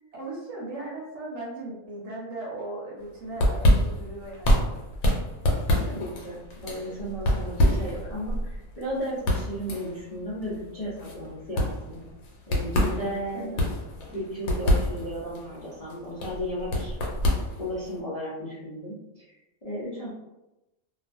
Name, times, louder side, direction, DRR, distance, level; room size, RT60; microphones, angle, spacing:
voice 1, 0.1-4.7 13.3-13.7, right 2 dB, 60° right, -3 dB, 0.9 m, -37 dB
sound 1, 3.0-18.0, equal, 80° left, 1.1 m, -27 dB
voice 2, 5.6-12.0 12.5-13.6 14.1-17.0 17.6-19.3 19.6-20.1, equal, 45° left, -10 dB, 0.5 m, -34 dB
2.4 x 2.3 x 2.5 m, 0.97 s
omnidirectional pair, 1.5 m